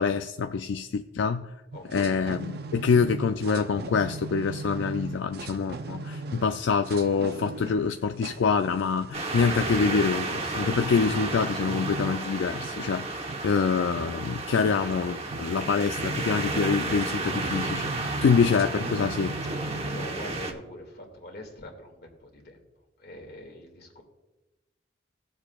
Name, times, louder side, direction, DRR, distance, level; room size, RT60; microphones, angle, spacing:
voice 1, 0.0-1.5 1.9-19.4, left 5 dB, 85° left, 8 dB, 0.4 m, -26 dB
voice 2, 1.7-2.2 13.4-13.7 19.4-19.5 19.8-22.6 23.0-24.0, left 1 dB, 60° left, 2 dB, 2.0 m, -44 dB
sound 1, 1.7-20.1, right 2 dB, 55° right, 0.6 m, -39 dB
sound 2, 9.1-20.5, right 2 dB, 35° right, 1.0 m, -32 dB
18.5 x 7.2 x 2.3 m, 1.0 s
head